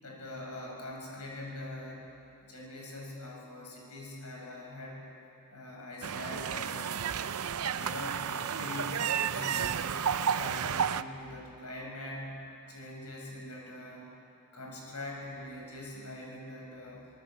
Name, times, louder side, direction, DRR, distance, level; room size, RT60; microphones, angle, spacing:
voice 1, 0.0-5.1 5.5-7.0 7.7-12.4 12.7-14.1 14.5-17.1, left 1 dB, 90° left, -1 dB, 6.9 m, -43 dB
sound 1, 6.0-11.0, right 7 dB, 75° right, 0.6 m, -32 dB
25.5 x 19.5 x 8.9 m, 2.7 s
head